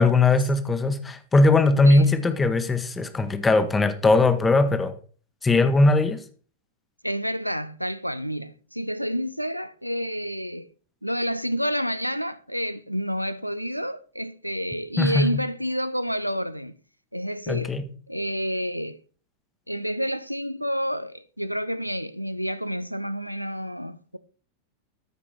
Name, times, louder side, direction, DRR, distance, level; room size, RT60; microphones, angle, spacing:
voice 1, 0.0-4.9 5.4-6.2 15.0-15.3 17.5-17.8, left 3 dB, 15° left, 1.1 m, -20 dB
voice 2, 7.0-10.7 11.0-16.7 17.1-17.7 18.1-19.0 19.7-24.2, equal, 90° right, 0.5 m, -29 dB
13.5 x 5.0 x 4.5 m
figure-of-eight pair, 90°, 0 cm